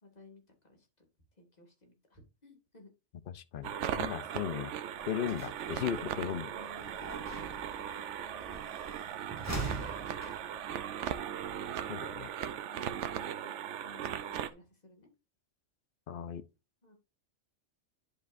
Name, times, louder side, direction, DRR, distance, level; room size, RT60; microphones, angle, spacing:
voice 1, 0.0-1.1 1.4-2.9 6.4-7.0 7.6-9.1 9.7-10.9 12.6-13.6 13.8-15.1 16.8-17.0, left 2 dB, 35° left, 2.1 m, -58 dB
voice 2, 3.3-4.7 5.1-6.5 11.9-12.3 16.1-16.4, left 9 dB, 55° left, 0.7 m, -36 dB
sound 1, 3.6-14.5, right 9 dB, 80° right, 0.9 m, -38 dB
sound 2, 4.9-12.3, right 3 dB, 15° left, 2.2 m, -44 dB
10.5 x 5.1 x 2.5 m
omnidirectional pair, 1.2 m